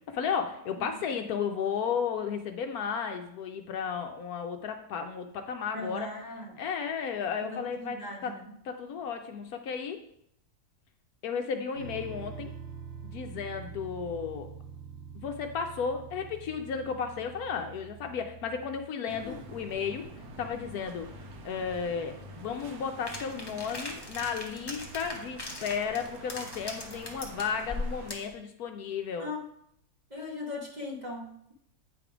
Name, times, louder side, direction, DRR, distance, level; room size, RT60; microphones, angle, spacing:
voice 1, 0.1-6.1 6.6-8.3 8.6-10.0 11.2-12.5 13.0-14.5 15.2-20.1 20.4-21.1 21.4-29.3, left 6 dB, 70° left, 5 dB, 1.0 m, -34 dB
voice 2, 5.7-6.5 7.4-8.5 19.2-19.3 29.2-29.4 30.1-31.5, left 2 dB, 25° right, -1 dB, 1.2 m, -39 dB
sound 1, 11.7-18.8, right 7 dB, 50° right, 1.7 m, -45 dB
sound 2, 19.1-28.1, right 2 dB, 65° right, 1.3 m, -47 dB
sound 3, 23.1-28.3, left 2 dB, 25° left, 0.5 m, -39 dB
8.4 x 3.4 x 4.9 m, 0.71 s
omnidirectional pair, 1.9 m